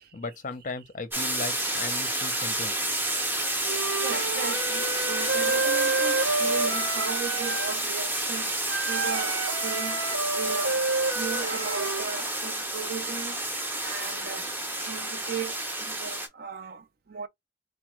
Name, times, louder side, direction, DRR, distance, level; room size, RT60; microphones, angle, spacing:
voice 1, 0.1-2.8, left 3 dB, 40° left, 0.5 m, -36 dB
sound 1, 1.1-16.3, right 1 dB, 10° right, 0.6 m, -30 dB
Wind instrument woodwind instrument, 3.6-7.7 8.7-12.0, right 3 dB, 85° right, 0.9 m, -29 dB
voice 2, 3.8-10.1 10.3-10.8 11.1-13.4 13.8-14.5 14.8-17.3, right 6 dB, 50° right, 0.4 m, -37 dB
4.3 x 2.2 x 3.0 m
head